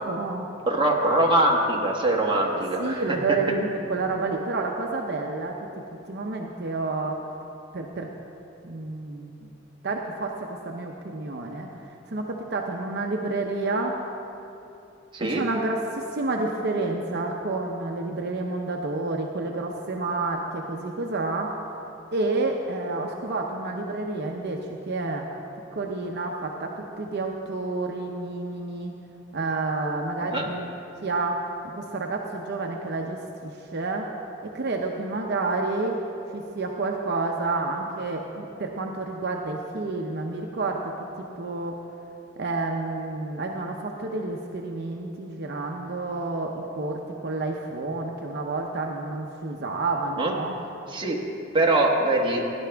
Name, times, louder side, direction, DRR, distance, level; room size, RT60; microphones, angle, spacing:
voice 1, 0.1-0.5 2.3-5.7 6.1-7.2 7.7-8.1 8.6-9.4 9.8-11.7 12.1-14.0 15.2-21.6 22.1-25.3 25.7-28.9 29.3-31.4 31.7-34.1 34.4-36.0 36.3-41.8 42.4-50.6, right 3 dB, 55° right, 1 dB, 0.7 m, -29 dB
voice 2, 0.7-3.0 15.1-15.4 30.3-30.5 50.2-50.3 50.9-51.2 51.5-52.4, right 1 dB, 25° right, -1 dB, 1.3 m, -22 dB
18.0 x 10.5 x 3.4 m, 2.8 s
head